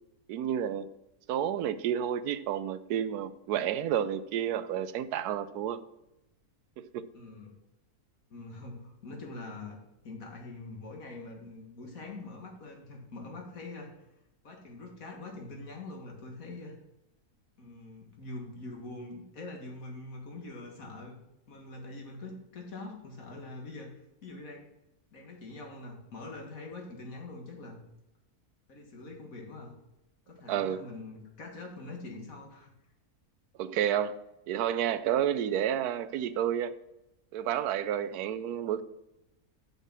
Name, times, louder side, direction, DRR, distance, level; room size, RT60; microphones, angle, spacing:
voice 1, 0.3-0.9 1.3-5.8 6.8-7.1 30.5-30.8 33.6-34.2 34.5-36.7 37.3-38.8, right 10 dB, 80° right, 14 dB, 1.1 m, -30 dB
voice 2, 7.1-7.6 8.3-9.8 10.0-13.9 14.4-16.7 17.6-21.1 21.5-23.9 24.2-24.7 25.1-27.8 28.7-29.7 30.3-32.7, left 2 dB, 65° left, 1 dB, 2.1 m, -44 dB
6.6 x 6.5 x 6.1 m, 0.89 s
omnidirectional pair, 1.6 m